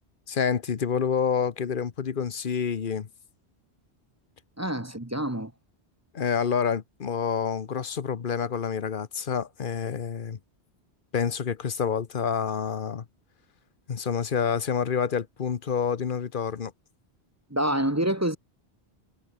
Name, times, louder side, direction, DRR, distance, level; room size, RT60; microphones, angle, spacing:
voice 1, 0.3-3.1 6.1-10.4 11.1-13.0 13.9-16.7, left 7 dB, 50° left, 1.1 m, -28 dB
voice 2, 4.6-5.5 17.5-18.4, right 1 dB, 15° right, 1.2 m, -27 dB
omnidirectional pair, 1.1 m